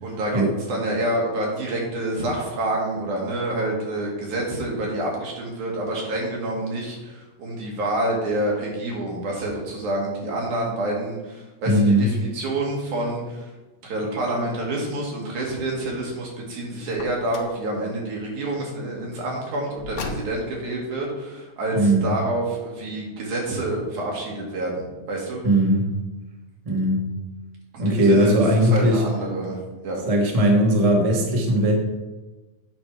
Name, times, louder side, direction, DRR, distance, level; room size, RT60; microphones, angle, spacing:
voice 1, 0.0-0.4 0.7-13.5 13.8-25.4 27.7-30.0, right 1 dB, 85° right, -2 dB, 3.4 m, -28 dB
voice 2, 11.7-12.1 21.7-22.1 25.4-25.8 26.6-27.1 27.8-29.0 30.1-31.7, right 1 dB, 60° right, 0 dB, 0.3 m, -19 dB
Car, 16.9-17.6 19.8-20.6, left 3 dB, 70° left, 1.1 m, -35 dB
9.0 x 4.8 x 5.8 m, 1.1 s
omnidirectional pair, 3.4 m